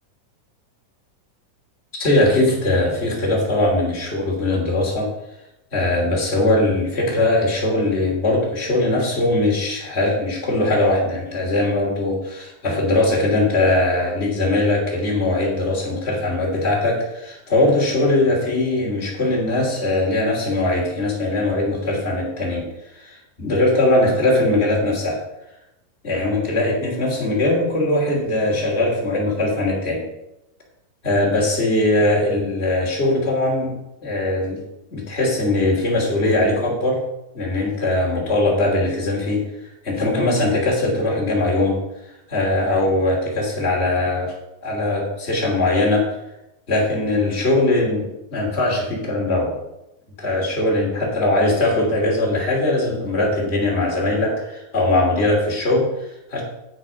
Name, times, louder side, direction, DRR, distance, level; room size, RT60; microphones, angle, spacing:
voice 1, 2.0-5.1 5.7-22.7 22.9-25.2 26.0-30.0 31.0-33.7 34.0-34.6 34.9-37.0 37.3-41.8 42.3-44.3 44.6-46.1 46.7-49.5 50.2-56.4, left 2 dB, 20° left, -2 dB, 2.8 m, -20 dB
11.0 x 7.3 x 5.1 m, 0.89 s
omnidirectional pair, 4.0 m